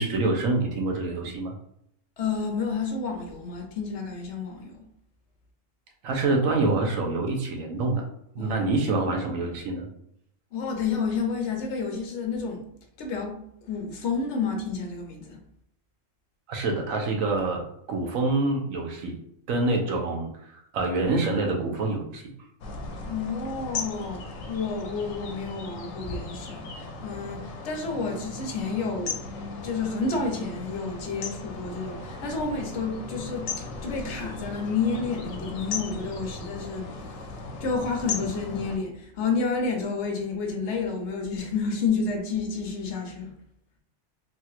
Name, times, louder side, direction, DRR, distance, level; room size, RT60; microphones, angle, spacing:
voice 1, 0.0-1.5 6.0-8.0 8.3-9.9 16.5-19.2 19.5-22.2, right 3 dB, 80° right, 1.1 m, -26 dB
voice 2, 2.2-4.9 8.4-8.6 10.5-12.6 13.0-15.4 23.1-29.3 29.6-37.3 37.6-43.3, left 4 dB, 65° left, 0.9 m, -30 dB
sound 1, 22.6-38.8, left 3 dB, 85° left, 1.0 m, -37 dB
3.2 x 2.9 x 2.3 m
omnidirectional pair, 1.4 m